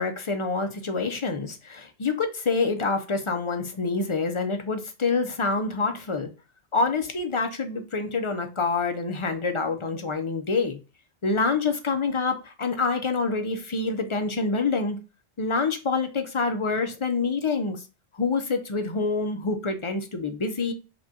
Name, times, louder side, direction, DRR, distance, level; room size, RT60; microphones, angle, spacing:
voice 1, 0.0-6.3 6.7-10.8 11.2-15.0 15.4-17.8 18.2-20.7, left 4 dB, 35° left, 0.5 m, -26 dB
5.1 x 2.3 x 2.7 m
omnidirectional pair, 1.2 m